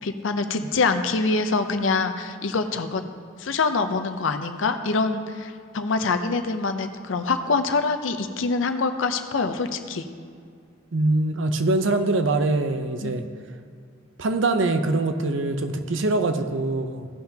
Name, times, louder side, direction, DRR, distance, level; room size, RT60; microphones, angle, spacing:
voice 1, 0.0-3.0 3.4-10.1 13.0-13.1, left 4 dB, 75° left, 8 dB, 0.6 m, -25 dB
voice 2, 10.9-13.2 14.2-17.1, right 2 dB, 70° right, 8 dB, 0.7 m, -23 dB
16.0 x 5.8 x 2.8 m, 2.2 s
head